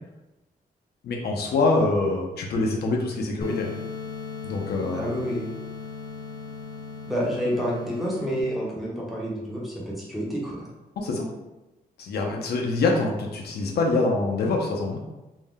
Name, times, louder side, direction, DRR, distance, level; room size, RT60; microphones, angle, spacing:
voice 1, 1.0-3.7 4.4-5.1 11.0-11.3 12.0-15.0, left 3 dB, 90° left, 0 dB, 0.5 m, -25 dB
sound 1, 3.4-8.4, left 4 dB, 20° left, 0.4 m, -37 dB
voice 2, 4.9-5.5 7.0-10.7, equal, ahead, -6 dB, 0.9 m, -29 dB
2.6 x 2.1 x 3.5 m, 1.0 s
cardioid pair, 105°, 16 cm